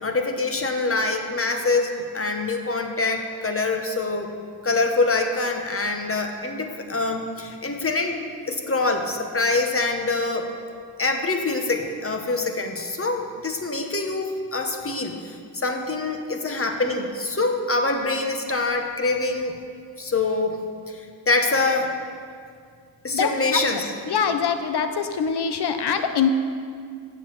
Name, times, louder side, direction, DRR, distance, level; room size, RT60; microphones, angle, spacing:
voice 1, 0.0-4.4 4.6-8.2 8.5-10.5 11.0-19.5 20.0-20.6 20.9-21.0 21.3-21.9 23.0-23.9, left 3 dB, 30° left, 4 dB, 1.1 m, -25 dB
voice 2, 23.1-23.6 24.1-26.3, left 7 dB, 65° left, 8 dB, 0.8 m, -24 dB
7.7 x 7.0 x 5.9 m, 2.2 s
cardioid pair, 60°, 43 cm